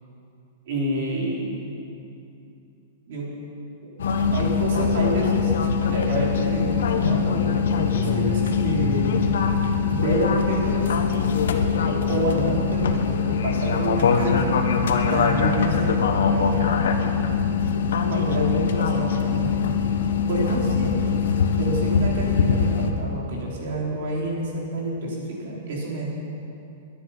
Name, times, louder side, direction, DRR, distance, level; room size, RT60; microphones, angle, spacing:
voice 1, 0.7-1.7 3.1-3.3 4.3-5.5 5.9-9.1 9.9-11.0 11.9-14.5 15.1-16.5 18.1-19.5 20.3-21.2 21.6-26.1, right 1 dB, 55° right, -3 dB, 4.1 m, -28 dB
sound 1, 4.0-22.9, left 6 dB, 80° left, 1.3 m, -22 dB
21.5 x 10.5 x 5.7 m, 2.7 s
supercardioid pair, 175°, 0 cm